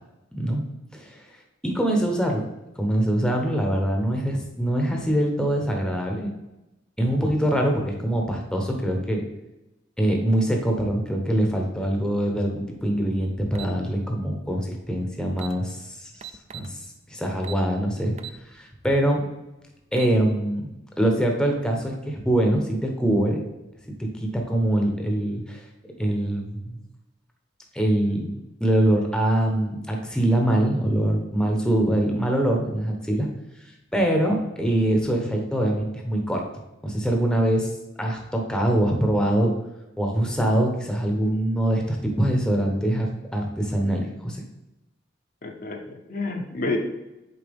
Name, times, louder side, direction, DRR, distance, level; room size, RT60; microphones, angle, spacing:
voice 1, 0.3-0.6 0.9-1.2 1.6-2.4 2.8-6.3 7.0-9.2 10.0-16.2 16.5-16.8 17.1-18.1 18.5-19.2 19.9-20.7 21.0-23.4 24.0-25.6 26.0-26.8 27.7-28.3 28.6-33.3 33.9-36.4 36.8-37.7 38.0-39.5 40.0-44.4, right 1 dB, 5° left, 1 dB, 0.8 m, -23 dB
sound 1, 13.5-13.7 15.0-15.1 15.3-15.6 16.2-16.7 17.4-17.7 18.2-18.4 18.8-18.9 19.7-20.2, right 9 dB, 35° right, 0.4 m, -39 dB
voice 2, 45.4-46.8, left 3 dB, 45° left, 2 dB, 0.7 m, -29 dB
6.8 x 4.5 x 3.4 m, 0.97 s
head